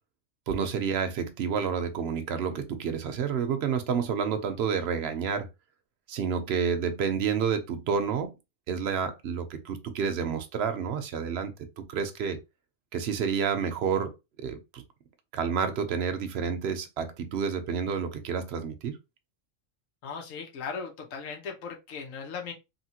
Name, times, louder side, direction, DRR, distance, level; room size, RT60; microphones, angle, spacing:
voice 1, 0.5-5.5 6.1-8.3 8.7-11.5 11.8-12.4 12.9-14.1 14.4-14.8 15.3-19.0, right 6 dB, 60° right, 0.8 m, -29 dB
voice 2, 20.0-22.5, left 5 dB, 80° left, 1.2 m, -38 dB
2.9 x 2.8 x 2.8 m
omnidirectional pair, 1.3 m